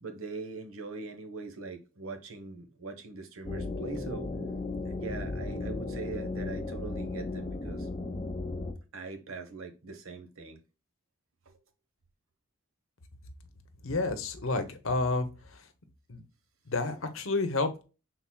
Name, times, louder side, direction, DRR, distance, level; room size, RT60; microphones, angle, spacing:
voice 1, 0.0-4.3 4.8-7.9 8.9-10.6 11.4-11.6, right 3 dB, 80° right, 1.0 m, -42 dB
sound 1, 3.4-8.7, left 3 dB, 25° left, 0.8 m, -35 dB
voice 2, 13.8-15.3 16.1-16.2 16.7-17.8, left 3 dB, 70° left, 0.8 m, -30 dB
5.7 x 3.9 x 2.2 m
head